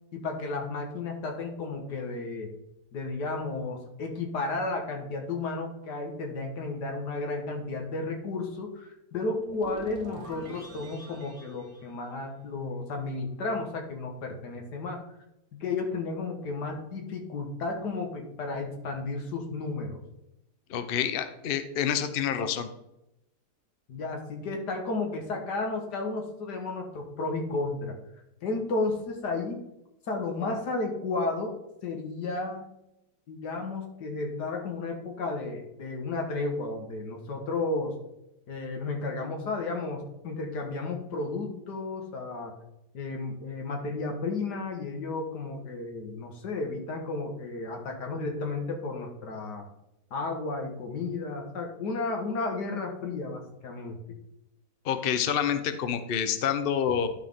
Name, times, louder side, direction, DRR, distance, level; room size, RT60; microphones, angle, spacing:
voice 1, 0.1-2.5 2.9-15.0 15.5-20.0 23.9-28.0 28.4-29.6 30.1-31.6 31.8-32.7 33.3-38.0 38.5-42.6 42.9-49.7 50.1-54.0, left 3 dB, 85° left, 2 dB, 1.9 m, -33 dB
sound 1, 9.4-12.7, right 1 dB, 45° right, 2.1 m, -45 dB
voice 2, 20.7-22.7 54.8-57.1, left 8 dB, 60° left, 10 dB, 0.6 m, -28 dB
11.5 x 4.6 x 3.6 m, 0.87 s
omnidirectional pair, 1.8 m